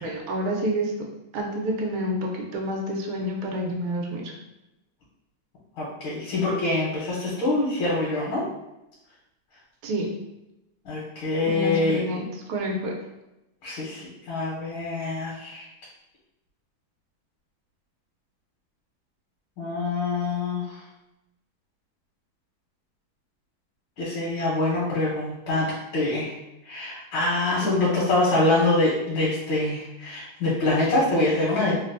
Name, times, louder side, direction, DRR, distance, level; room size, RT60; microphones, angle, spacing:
voice 1, 0.0-4.3 9.8-10.1 11.4-12.9 27.6-27.9, right 1 dB, 85° right, 0 dB, 1.4 m, -29 dB
voice 2, 5.8-8.4 10.8-12.0 13.6-15.7 19.6-20.8 24.0-26.4 26.6-31.8, left 2 dB, 80° left, -6 dB, 1.6 m, -25 dB
3.8 x 2.1 x 2.5 m, 0.92 s
omnidirectional pair, 2.2 m